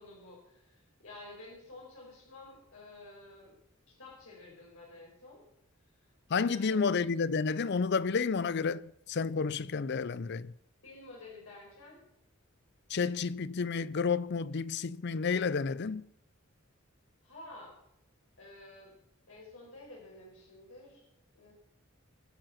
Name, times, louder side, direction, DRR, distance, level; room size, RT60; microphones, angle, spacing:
voice 1, 0.0-3.6 3.9-5.4 5.9-6.1 6.4-6.9 10.8-12.0 17.2-17.7 18.4-18.9 19.3-21.1 21.3-21.5, left 2 dB, 85° left, 4.9 m, -51 dB
voice 2, 6.3-10.5 12.9-16.0, left 5 dB, 55° left, 0.5 m, -31 dB
22.0 x 7.8 x 5.8 m
head